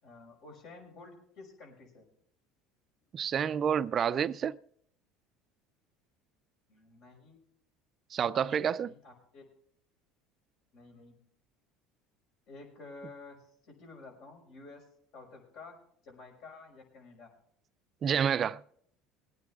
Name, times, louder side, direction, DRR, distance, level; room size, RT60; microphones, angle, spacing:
voice 1, 0.0-2.0 6.7-7.4 8.3-9.4 10.7-11.1 12.5-14.8 15.1-15.8 16.0-17.3, left 3 dB, 65° left, 6.0 m, -51 dB
voice 2, 3.1-4.6 8.1-8.9 18.0-18.6, right 8 dB, 40° right, 0.4 m, -29 dB
21.5 x 9.5 x 3.5 m
supercardioid pair, 100°, 0 cm